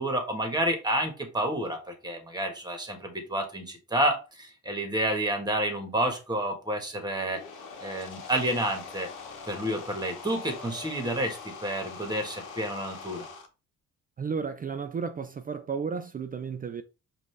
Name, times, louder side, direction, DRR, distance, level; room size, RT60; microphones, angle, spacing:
voice 1, 0.0-7.4 7.8-9.1 9.5-13.3, right 1 dB, 15° right, 1.4 m, -29 dB
sound 1, 7.0-13.5, left 5 dB, 80° left, 1.0 m, -43 dB
voice 2, 14.2-16.8, right 6 dB, 30° right, 0.4 m, -33 dB
5.3 x 2.6 x 3.2 m
cardioid pair, 90°, 30 cm